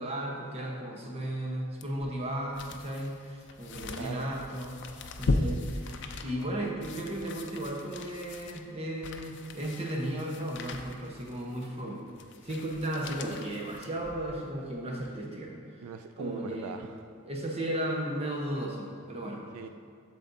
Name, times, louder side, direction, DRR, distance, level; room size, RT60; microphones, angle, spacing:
voice 1, 0.0-4.8 5.2-12.0 12.4-15.8 16.2-16.7 17.2-19.4, right 1 dB, 30° right, -1 dB, 1.0 m, -35 dB
sound 1, 1.8-14.5 14.9-15.0, left 2 dB, 55° left, 0.5 m, -38 dB
voice 2, 3.9-4.3 15.8-17.2 19.5-19.7, right 6 dB, 80° right, 7 dB, 0.3 m, -41 dB
8.3 x 7.0 x 2.7 m, 2.2 s
head